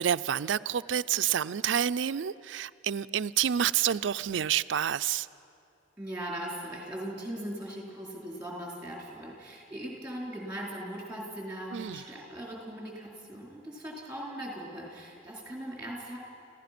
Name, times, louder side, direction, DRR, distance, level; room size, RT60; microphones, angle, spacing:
voice 1, 0.0-5.3 11.7-12.0, right 9 dB, 80° right, 15 dB, 0.4 m, -28 dB
voice 2, 6.0-16.2, right 1 dB, 10° right, -2 dB, 4.2 m, -39 dB
30.0 x 15.5 x 6.0 m, 2.5 s
head